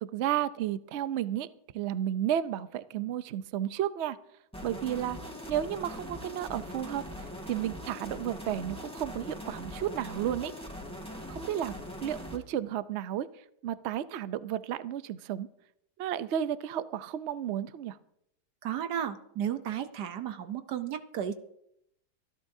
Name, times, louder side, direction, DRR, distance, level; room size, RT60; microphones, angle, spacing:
voice 1, 0.0-4.2 4.6-5.2 5.5-10.5 11.3-11.7 12.0-15.5 16.0-18.0, right 11 dB, 60° right, 14 dB, 0.7 m, -33 dB
sound 1, 4.5-12.4, equal, 5° left, 2.9 m, -41 dB
voice 2, 18.6-21.3, right 9 dB, 80° right, 9 dB, 1.4 m, -33 dB
24.5 x 12.0 x 2.7 m, 0.76 s
omnidirectional pair, 1.8 m